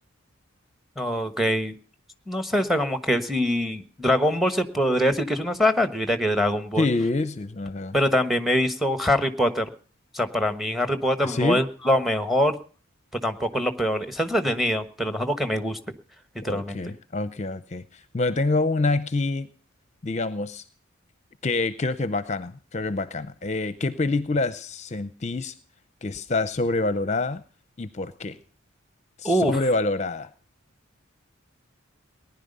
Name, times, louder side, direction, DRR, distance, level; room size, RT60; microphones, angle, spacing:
voice 1, 1.0-1.7 2.3-6.9 7.9-9.7 10.1-12.6 13.2-15.8 16.4-16.8 29.2-29.6, equal, ahead, 9 dB, 1.3 m, -24 dB
voice 2, 6.8-8.0 11.2-11.6 16.4-19.5 20.0-20.6 21.4-25.5 26.0-27.4 27.8-28.4 29.2-30.3, left 2 dB, 35° left, 12 dB, 0.7 m, -26 dB
19.0 x 11.0 x 5.4 m, 0.43 s
head